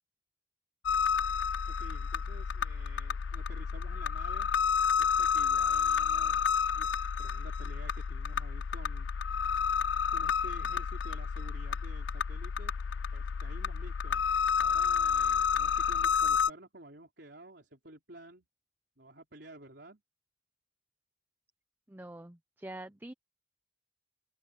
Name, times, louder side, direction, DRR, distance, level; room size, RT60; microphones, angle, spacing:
scaryscape thrillfeedcussions, 0.9-16.5, left 6 dB, 75° left, 0.4 m, -30 dB
voice 1, 1.7-4.5 5.0-9.4 10.1-12.7 13.1-14.2 14.6-18.5 19.0-20.0, right 1 dB, 60° right, 4.3 m, -52 dB
voice 2, 21.9-23.1, right 1 dB, 10° right, 0.6 m, -45 dB
open air
head